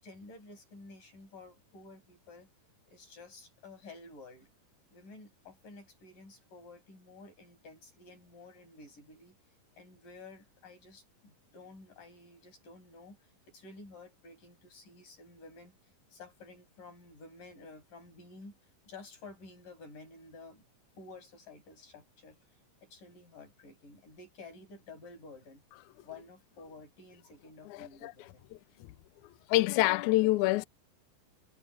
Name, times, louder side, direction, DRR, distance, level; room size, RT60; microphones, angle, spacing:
voice 1, 0.0-2.5 2.9-4.5 4.9-9.4 9.7-18.6 18.9-20.6 21.0-25.6 26.0-28.5, left 3 dB, 60° left, 8.7 m, -52 dB
voice 2, 27.7-28.1 29.5-30.7, left 19 dB, 90° left, 1.7 m, -26 dB
omnidirectional pair, 4.2 m